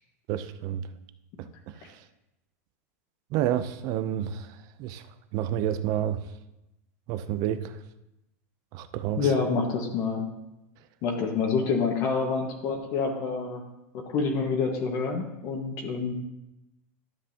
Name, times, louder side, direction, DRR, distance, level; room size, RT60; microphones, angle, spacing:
voice 1, 0.3-0.9 1.4-1.5 1.9-2.0 3.3-5.0 5.3-6.2 7.1-7.8 8.7-9.3, right 11 dB, 50° right, 12 dB, 0.6 m, -29 dB
voice 2, 9.2-10.2 11.0-13.6 14.1-16.1, left 5 dB, 50° left, 1 dB, 1.5 m, -27 dB
12.0 x 7.5 x 2.9 m, 0.92 s
supercardioid pair, 120°, 8 cm